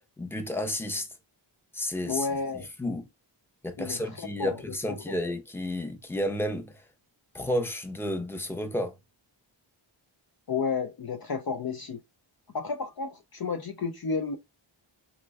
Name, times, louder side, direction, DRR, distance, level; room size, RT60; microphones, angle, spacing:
voice 1, 0.2-1.1 1.7-2.3 2.8-3.0 3.6-6.7 7.3-8.9, left 1 dB, 5° left, 0.6 m, -31 dB
voice 2, 2.1-2.7 3.8-5.2 10.5-12.0 12.5-14.4, left 5 dB, 50° left, 0.5 m, -32 dB
3.3 x 2.1 x 3.3 m
wide cardioid pair, 50°, 48 cm